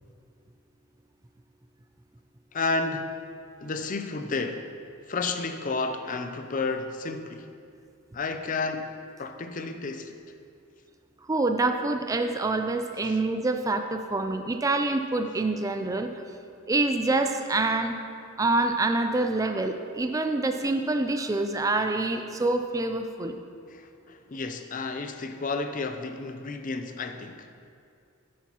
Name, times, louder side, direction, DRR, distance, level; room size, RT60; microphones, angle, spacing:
voice 1, 2.5-3.1 3.6-4.7 5.1-7.5 8.1-8.9 9.2-10.2 13.0-13.2 23.7-27.5, left 3 dB, 40° left, 7 dB, 0.5 m, -31 dB
voice 2, 11.2-16.1 16.7-18.0 18.4-23.4, right 2 dB, 15° right, 6 dB, 0.4 m, -26 dB
10.5 x 9.4 x 3.0 m, 2.4 s
head